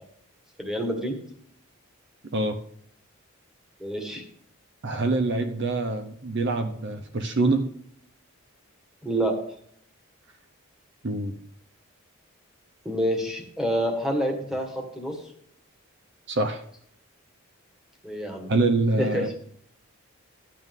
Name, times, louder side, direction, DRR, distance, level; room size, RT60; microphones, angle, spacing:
voice 1, 0.6-1.1 3.8-4.2 9.0-9.3 12.8-15.2 18.0-18.5 19.0-19.3, equal, 5° right, 2 dB, 1.7 m, -27 dB
voice 2, 4.8-7.7 11.0-11.3 16.3-16.6 18.5-19.3, right 2 dB, 55° right, 7 dB, 0.8 m, -25 dB
12.5 x 8.6 x 3.6 m, 0.65 s
head